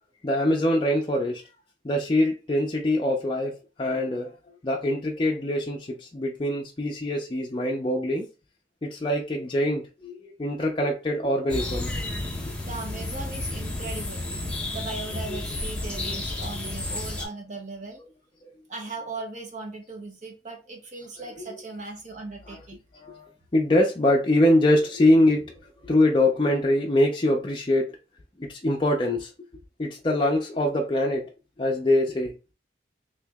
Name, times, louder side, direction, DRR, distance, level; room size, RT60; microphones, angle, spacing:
voice 1, 0.2-1.4 1.8-4.3 4.6-8.3 8.8-11.9 15.3-15.4 16.0-16.2 16.6-16.7 21.4-21.6 22.9-25.6 25.8-28.0 28.4-29.3 29.8-31.3 31.6-32.3, left 1 dB, 30° left, 0.5 m, -24 dB
sound 1, 11.5-17.2, left 2 dB, 5° left, 0.8 m, -32 dB
voice 2, 12.7-18.0 18.7-22.8, right 3 dB, 45° right, 0.9 m, -38 dB
2.9 x 2.8 x 3.4 m
head